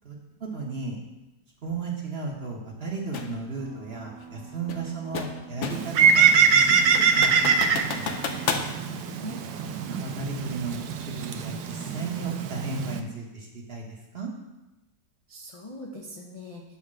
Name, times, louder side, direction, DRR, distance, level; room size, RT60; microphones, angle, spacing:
voice 1, 0.4-1.0 1.6-7.4 7.7-8.1 9.8-14.3, right 4 dB, 40° right, -1 dB, 1.2 m, -35 dB
sound 1, 3.1-3.3 4.7-6.0 6.4-6.5 6.9-8.7, left 5 dB, 60° left, 0.8 m, -31 dB
sound 2, 3.5-10.7, right 3 dB, 60° right, 1.9 m, -47 dB
Bird, 5.7-13.0, right 6 dB, 80° right, 1.2 m, -23 dB
voice 2, 8.7-9.4 15.3-16.6, left 1 dB, 40° left, -2 dB, 0.5 m, -42 dB
8.5 x 3.5 x 6.1 m, 1.0 s
omnidirectional pair, 1.8 m